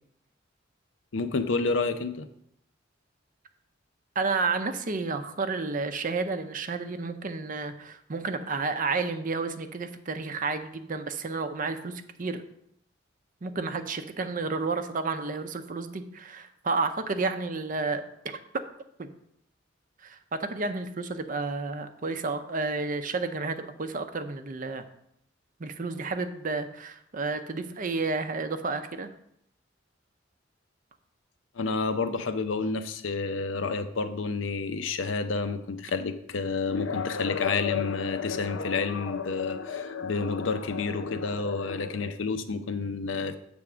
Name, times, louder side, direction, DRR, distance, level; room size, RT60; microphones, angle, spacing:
voice 1, 1.1-2.3 31.6-43.4, left 4 dB, 80° left, 9 dB, 0.6 m, -29 dB
voice 2, 4.2-12.4 13.4-18.0 19.0-19.1 20.0-24.8 25.6-29.1, right 4 dB, 45° right, 9 dB, 0.6 m, -31 dB
7.6 x 3.5 x 6.0 m, 0.73 s
head